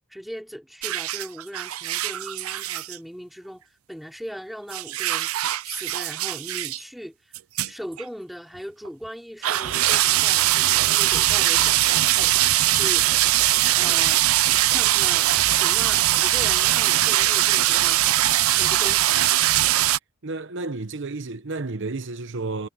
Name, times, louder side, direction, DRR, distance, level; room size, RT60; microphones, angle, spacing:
voice 1, 0.1-5.3 5.6-7.3 7.7-13.4 13.8-14.2 14.7-18.0 18.5-19.3, equal, ahead, 3.0 m, -39 dB
sound 1, 0.8-3.0 4.7-6.8 7.3-7.7 8.0-8.1 8.8-8.9 9.4-20.0, right 14 dB, 90° right, 0.6 m, -21 dB
voice 2, 20.2-22.7, right 3 dB, 60° right, 1.0 m, -31 dB
head